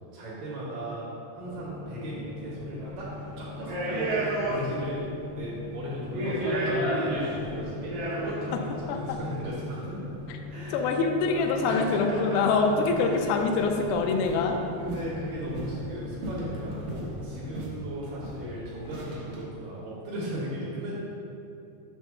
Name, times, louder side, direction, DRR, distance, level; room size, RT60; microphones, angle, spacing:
voice 1, 0.1-1.1 1.3-3.1 3.4-5.0 5.3-10.0 10.5-10.9 11.7-12.7 13.0-13.2 14.8-20.9, right 1 dB, 75° right, -6 dB, 2.0 m, -36 dB
sound 1, 1.4-17.4, left 4 dB, 70° left, 1.2 m, -41 dB
sound 2, 2.8-3.0 3.6-5.0 5.2-5.3 5.9-8.6 9.5-9.6 11.3-11.8 12.3-12.4 12.6-13.1 13.4-13.8 14.2-14.5 14.9-15.8 16.2-17.1 17.5-17.8 18.0-18.4 18.9-19.4, right 1 dB, 90° right, 1.6 m, -32 dB
voice 2, 10.7-14.6, left 4 dB, 85° left, 3 dB, 2.3 m, -25 dB
7.3 x 3.2 x 6.2 m, 2.7 s
omnidirectional pair, 5.3 m